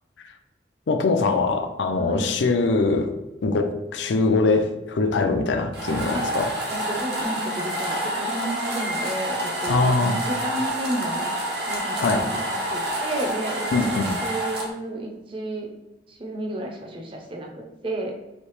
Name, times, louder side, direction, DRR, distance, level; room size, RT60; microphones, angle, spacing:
voice 1, 0.9-3.1 3.4-6.5 9.7-10.2 12.0-12.3 13.7-14.1, left 3 dB, 90° left, 6 dB, 0.4 m, -22 dB
sound 1, 5.7-14.7, right 1 dB, 65° right, 0.8 m, -28 dB
voice 2, 6.7-11.3 11.7-15.7 16.1-18.1, right 1 dB, 30° right, 1 dB, 0.5 m, -32 dB
3.2 x 2.7 x 3.1 m, 1.0 s
head